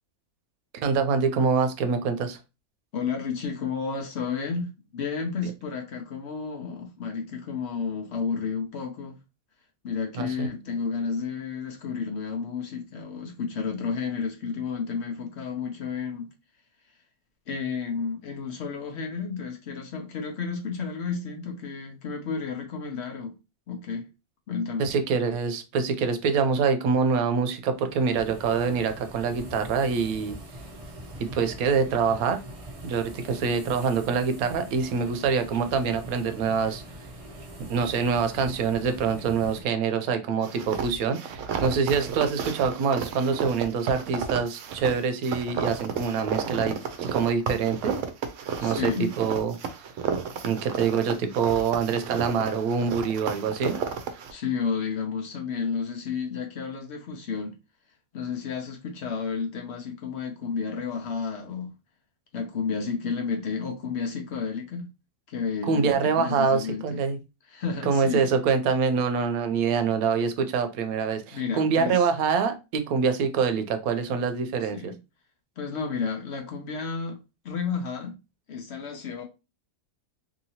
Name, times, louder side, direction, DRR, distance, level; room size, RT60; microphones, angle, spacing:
voice 1, 0.7-2.4 10.1-10.5 24.8-30.4 31.2-32.4 32.8-36.8 37.7-46.8 47.1-48.0 48.6-49.9 50.4-53.8 65.7-67.2 67.8-74.9, right 5 dB, 85° right, 1.0 m, -25 dB
voice 2, 2.9-9.2 9.8-16.3 17.5-23.3 23.7-24.1 24.5-24.9 48.6-49.1 54.3-57.6 58.1-61.7 62.3-64.9 65.3-67.0 67.5-68.3 71.3-72.1 74.6-75.0 75.6-77.2 77.4-78.2 78.5-79.2, left 5 dB, 60° left, 0.8 m, -31 dB
sound 1, 27.7-39.6, right 1 dB, 50° right, 0.4 m, -43 dB
sound 2, 40.4-54.3, right 6 dB, 70° right, 0.8 m, -32 dB
2.9 x 2.8 x 2.7 m
omnidirectional pair, 1.5 m